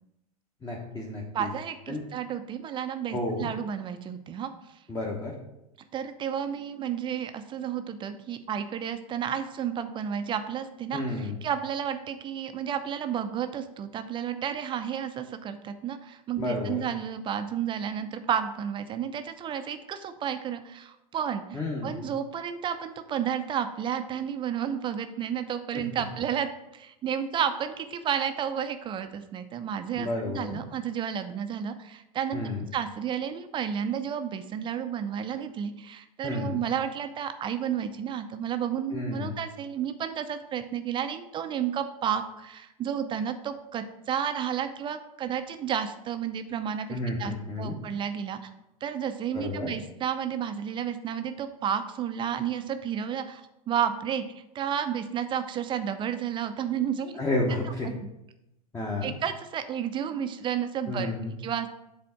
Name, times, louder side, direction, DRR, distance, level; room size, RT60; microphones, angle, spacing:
voice 1, 0.6-1.5 1.9-2.0 3.1-3.5 4.9-5.3 10.9-11.4 16.4-16.9 21.5-22.1 25.7-25.8 30.0-30.6 32.3-32.6 36.2-36.6 38.9-39.4 46.9-47.8 49.3-49.7 57.1-57.9 58.7-59.1 60.9-61.4, left 2 dB, 15° left, -2 dB, 1.1 m, -31 dB
voice 2, 1.3-4.5 5.9-32.4 32.7-48.4 48.8-57.2 57.6-57.9 59.0-61.1 61.4-61.7, right 8 dB, 25° right, 9 dB, 0.6 m, -32 dB
7.5 x 4.2 x 5.7 m, 0.87 s
figure-of-eight pair, 85°, 20 cm